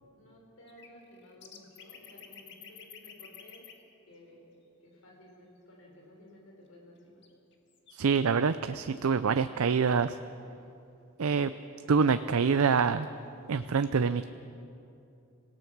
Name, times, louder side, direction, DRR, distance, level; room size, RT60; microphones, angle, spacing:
voice 1, 0.1-3.7 4.1-7.2, left 1 dB, 80° left, -2 dB, 5.4 m, -55 dB
sound 1, 0.7-3.7 7.2-7.3 7.5-7.9, left 8 dB, 55° left, 1.7 m, -50 dB
voice 2, 7.9-10.2 11.2-11.5 11.9-13.1 13.5-14.3, right 5 dB, 85° right, 11 dB, 0.5 m, -26 dB
26.5 x 17.5 x 6.0 m, 2.7 s
head